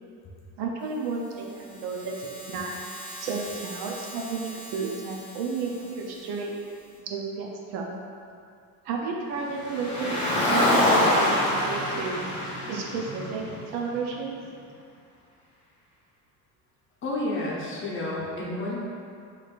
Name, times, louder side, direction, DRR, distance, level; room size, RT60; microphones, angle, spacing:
voice 1, 0.6-2.7 3.2-6.6 7.0-7.9 8.8-12.2 12.7-13.4 13.7-14.4, right 4 dB, 75° right, 0 dB, 0.7 m, -32 dB
sound 1, 0.8-7.0, right 1 dB, 45° right, 1.5 m, -44 dB
Car, 9.6-14.0, left 1 dB, 15° left, 1.2 m, -25 dB
voice 2, 17.0-18.8, left 1 dB, 30° left, -5 dB, 0.8 m, -30 dB
4.3 x 3.1 x 2.5 m, 2.4 s
cardioid pair, 130°, 39 cm